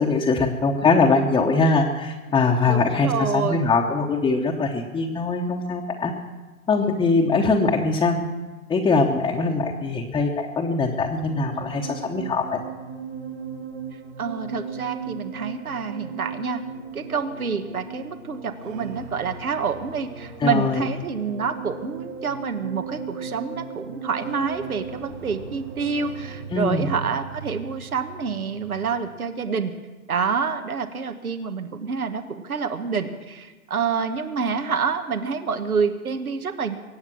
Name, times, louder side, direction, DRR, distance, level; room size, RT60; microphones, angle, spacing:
voice 1, 0.0-6.1 6.7-8.3 8.7-12.6 20.4-20.8 26.5-26.9, left 3 dB, 10° left, -1 dB, 1.0 m, -22 dB
voice 2, 2.7-3.7 14.2-16.6 16.9-29.7 30.1-36.8, right 5 dB, 85° right, 7 dB, 1.4 m, -27 dB
sound 1, 10.7-29.2, right 6 dB, 50° right, 2.6 m, -37 dB
23.5 x 8.8 x 6.2 m, 1.2 s
hypercardioid pair, 125°, 42 cm